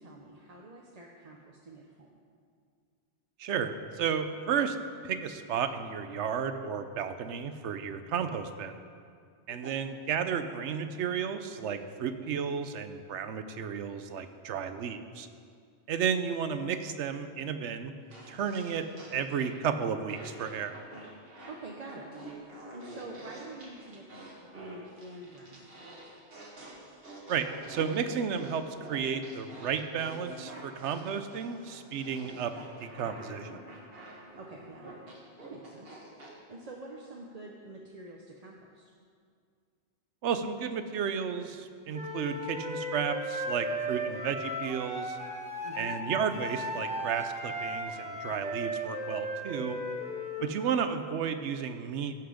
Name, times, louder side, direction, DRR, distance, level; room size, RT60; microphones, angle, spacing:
voice 1, 0.0-2.1 9.6-9.7 21.5-22.4 22.7-26.1 34.4-34.9 35.4-38.9 45.6-46.0 50.4-50.5, right 2 dB, 40° right, -1 dB, 0.8 m, -47 dB
voice 2, 3.4-4.8 5.0-8.7 9.5-15.3 15.9-17.9 18.3-18.9 19.1-20.7 27.3-32.5 32.8-33.6 40.2-45.2 45.8-49.8 50.4-52.1, right 7 dB, 80° right, 9 dB, 1.0 m, -33 dB
sound 1, 18.1-19.7 20.1-36.3, right 1 dB, 60° right, 1.8 m, -48 dB
Wind instrument woodwind instrument, 41.9-50.5, equal, 5° right, 1.4 m, -36 dB
15.0 x 5.9 x 5.0 m, 2.2 s
omnidirectional pair, 1.2 m